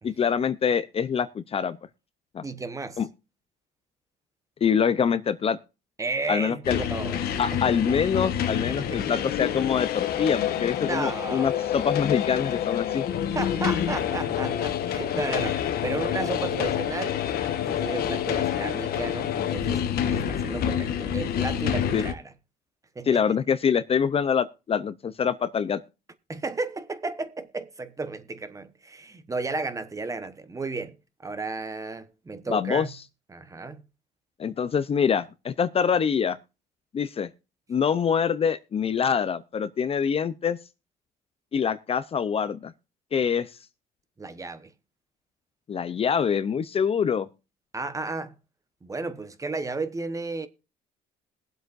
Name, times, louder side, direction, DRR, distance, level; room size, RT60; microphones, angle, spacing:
voice 1, 0.0-1.8 2.3-2.5 3.0-3.1 4.6-5.6 6.3-6.8 7.4-13.1 21.9-22.0 23.1-25.8 32.5-32.9 34.4-36.4 36.9-37.3 37.7-40.6 41.5-42.7 43.1-43.5 45.7-47.3, left 7 dB, 35° left, 0.6 m, -25 dB
voice 2, 2.4-3.0 6.0-7.3 8.5-9.2 10.8-11.7 13.3-17.2 17.7-22.2 22.9-23.4 26.3-30.9 31.2-32.9 33.3-33.8 44.2-44.7 47.7-48.3 48.8-50.5, right 3 dB, 20° right, 1.1 m, -33 dB
sound 1, 6.6-22.1, left 9 dB, 65° left, 1.2 m, -27 dB
21.0 x 7.9 x 2.6 m
cardioid pair, 110°, 17 cm